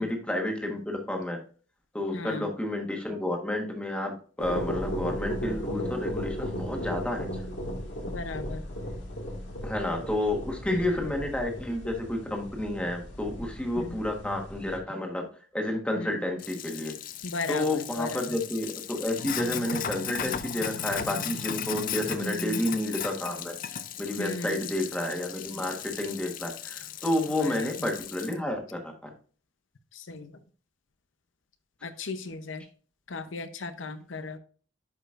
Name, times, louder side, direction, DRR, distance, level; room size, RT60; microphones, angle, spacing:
voice 1, 0.0-1.4 1.9-7.3 9.6-15.2 15.5-16.9 17.5-23.5 24.0-29.1, left 1 dB, 5° left, 2 dB, 1.3 m, -30 dB
voice 2, 2.1-2.5 8.1-8.6 10.7-11.0 13.8-13.9 16.0-16.2 17.2-18.3 22.2-22.6 24.2-24.7 27.4-27.9 29.9-30.3 31.8-32.6 33.1-34.4, left 3 dB, 85° left, 10 dB, 0.7 m, -36 dB
sound 1, 4.4-14.8, equal, 70° left, 1.8 m, -36 dB
Sink (filling or washing), 16.4-28.3, left 8 dB, 45° left, 0.4 m, -36 dB
10.5 x 5.1 x 2.5 m, 0.40 s
head